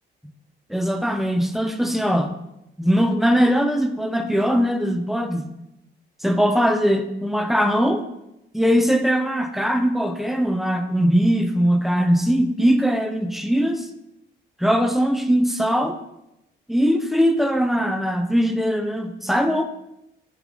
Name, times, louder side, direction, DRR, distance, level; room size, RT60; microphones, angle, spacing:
voice 1, 0.7-2.3 2.8-5.5 6.2-8.0 8.5-13.9 14.6-16.0 16.7-19.6, equal, ahead, 7 dB, 0.3 m, -20 dB
3.6 x 3.3 x 3.1 m, 0.86 s
cardioid pair, 90°, 20 cm